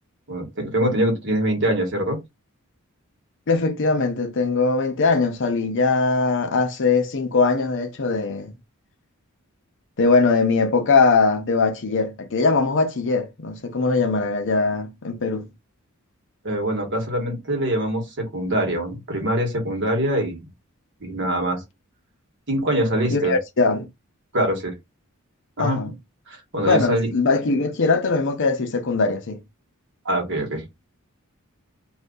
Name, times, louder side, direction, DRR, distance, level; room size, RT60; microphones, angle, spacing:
voice 1, 0.3-2.2 16.4-20.4 21.0-21.6 22.5-23.4 24.3-24.7 25.6-25.8 26.3-27.1 30.0-30.6, right 1 dB, 55° right, 1.4 m, -24 dB
voice 2, 3.5-8.5 10.0-15.5 23.1-23.9 25.6-26.0 26.7-29.4, left 4 dB, 60° left, 0.7 m, -21 dB
2.6 x 2.6 x 3.7 m
head